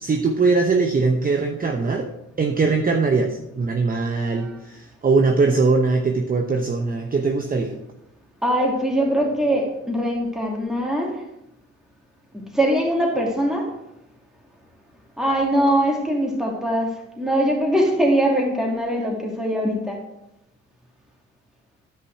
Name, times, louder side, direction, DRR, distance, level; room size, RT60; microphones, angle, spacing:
voice 1, 0.0-2.1 2.4-7.7, right 4 dB, 30° right, 4 dB, 0.8 m, -21 dB
voice 2, 3.9-4.5 8.4-11.2 12.3-13.7 15.2-20.0, equal, ahead, -1 dB, 2.6 m, -22 dB
9.9 x 5.7 x 4.8 m, 0.86 s
cardioid pair, 90°, 30 cm